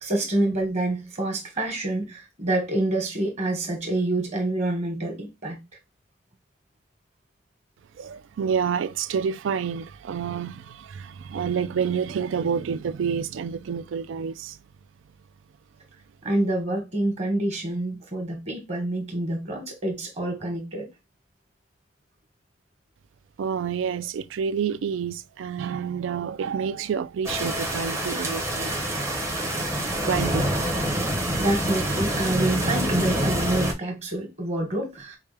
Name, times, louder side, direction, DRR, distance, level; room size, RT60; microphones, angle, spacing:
voice 1, 0.0-5.6 16.2-20.9 31.4-35.2, right 1 dB, 35° right, 1.2 m, -27 dB
voice 2, 8.0-14.6 23.4-28.7 30.1-30.4, right 7 dB, 70° right, 0.3 m, -28 dB
sound 1, 27.2-33.7, right 1 dB, 15° right, 0.7 m, -26 dB
4.8 x 2.2 x 3.2 m
head